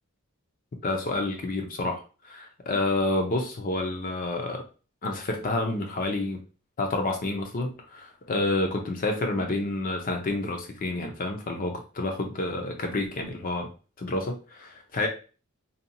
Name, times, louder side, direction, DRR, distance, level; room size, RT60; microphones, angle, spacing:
voice 1, 0.8-4.6 5.0-6.4 6.8-13.7 14.0-15.1, left 2 dB, 40° left, 3 dB, 0.5 m, -29 dB
2.7 x 2.2 x 2.6 m, 0.35 s
head